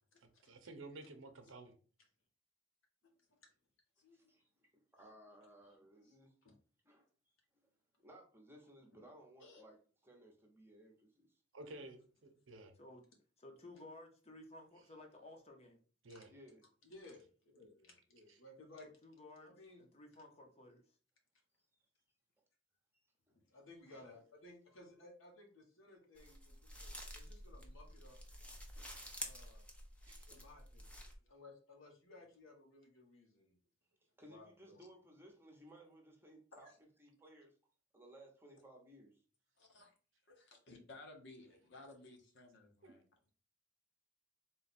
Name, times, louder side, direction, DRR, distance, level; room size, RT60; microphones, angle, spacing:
voice 1, 0.2-1.7 11.5-12.7 16.0-16.3 30.1-30.3 42.8-42.9, right 2 dB, 75° right, 6 dB, 0.8 m, -53 dB
voice 2, 3.0-3.4 4.0-4.2 6.0-6.2 9.4-9.6 30.3-30.4 34.8-34.9 36.5-36.8 39.6-39.9 40.3-43.0, left 2 dB, 65° left, 2 dB, 1.1 m, -58 dB
voice 3, 5.0-6.3 6.9-7.1 8.0-9.7 10.1-11.3 16.3-16.6 23.9-24.0 28.8-29.1 34.2-36.7 37.0-37.5 37.9-39.1, right 1 dB, 10° right, 0 dB, 1.0 m, -59 dB
voice 4, 13.4-15.8 18.8-20.8, left 2 dB, 35° left, 2 dB, 0.9 m, -56 dB
voice 5, 16.8-18.9 19.4-19.8 23.3-28.2 29.2-29.6 30.3-33.5 34.2-34.8, left 2 dB, 85° left, 0 dB, 1.4 m, -59 dB
sound 1, 26.2-31.1, equal, 5° left, 0.7 m, -50 dB
3.8 x 2.4 x 4.2 m, 0.39 s
head